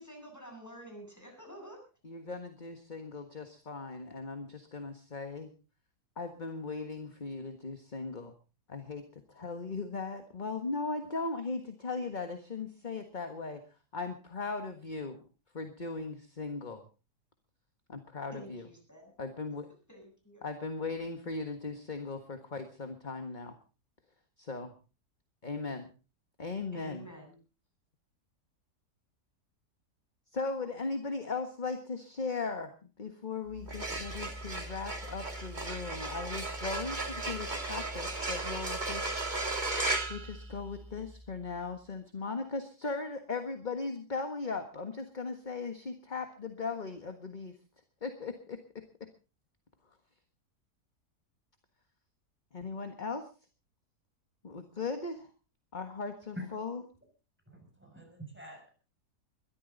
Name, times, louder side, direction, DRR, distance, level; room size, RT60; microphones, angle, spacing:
voice 1, 0.0-1.8 18.3-19.1 19.9-20.5 26.7-27.3, equal, 10° left, 2 dB, 8.0 m, -49 dB
voice 2, 2.0-5.5 6.2-8.3 8.7-9.0 9.3-13.6 13.9-15.2 15.5-16.8 17.9-18.6 19.2-19.7 20.4-23.6 24.4-24.7 25.4-25.9 26.4-27.1 30.3-39.1 40.1-47.5 48.0-48.6 52.5-53.3 54.4-55.3 55.7-56.8, left 4 dB, 30° left, 7 dB, 1.6 m, -38 dB
sound 1, 33.6-41.0, right 2 dB, 30° right, 2.5 m, -35 dB
voice 3, 57.5-58.7, equal, 5° right, 3 dB, 6.9 m, -45 dB
22.0 x 13.5 x 4.0 m, 0.35 s
omnidirectional pair, 1.7 m